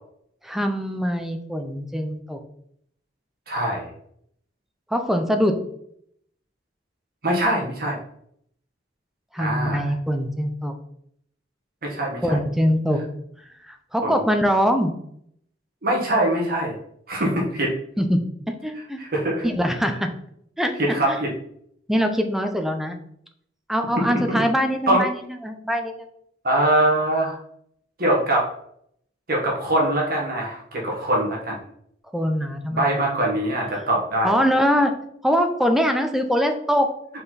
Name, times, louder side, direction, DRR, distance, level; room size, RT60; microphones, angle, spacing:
voice 1, 0.4-2.4 4.9-5.6 9.3-10.7 12.2-13.0 13.7-14.9 18.0-18.2 18.6-19.0 19.4-20.1 20.6-21.2 21.9-23.0 23.7-26.1 32.1-33.1 34.2-34.9 35.2-36.9, equal, ahead, 5 dB, 0.6 m, -23 dB
voice 2, 3.5-3.9 7.2-8.0 9.4-9.9 11.8-12.4 14.0-14.2 15.8-16.7 17.1-17.7 19.0-19.5 20.8-21.3 24.1-24.4 24.9-25.0 26.4-27.4 28.0-28.5 29.3-31.6 32.7-34.3, right 1 dB, 55° right, -2 dB, 1.6 m, -23 dB
5.5 x 4.5 x 4.0 m, 0.69 s
head